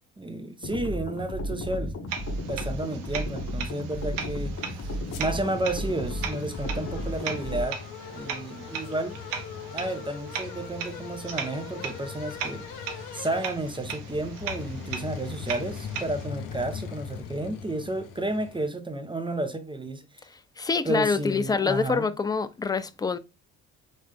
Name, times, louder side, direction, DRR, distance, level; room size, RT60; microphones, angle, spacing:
voice 1, 0.2-4.5 5.2-7.8 8.1-9.2 9.7-12.7 13.1-20.3 20.8-22.1, right 2 dB, 10° right, 0.8 m, -32 dB
sound 1, 0.6-7.6, equal, 40° left, 1.2 m, -33 dB
sound 2, 2.1-16.3, right 7 dB, 75° right, 0.8 m, -38 dB
sound 3, 4.1-18.7, left 7 dB, 75° left, 0.7 m, -40 dB
voice 2, 20.6-23.2, left 5 dB, 10° left, 0.3 m, -26 dB
4.0 x 3.2 x 3.5 m
hypercardioid pair, 45°, 41 cm